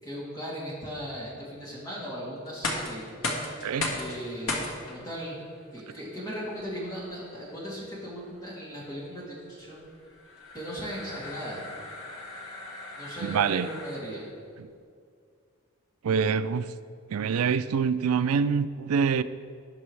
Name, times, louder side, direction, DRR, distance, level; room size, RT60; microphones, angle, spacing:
voice 1, 0.0-3.4 3.9-5.4 5.7-9.9 10.5-11.6 13.0-14.2, equal, 15° left, -7 dB, 2.7 m, -38 dB
sound 1, 2.5-14.3, left 2 dB, 70° left, 1.5 m, -38 dB
voice 2, 3.6-4.0 13.2-13.7 14.6-14.7 16.0-16.7 17.1-19.2, right 6 dB, 85° right, 14 dB, 0.4 m, -25 dB
17.5 x 6.1 x 3.3 m, 2.2 s
head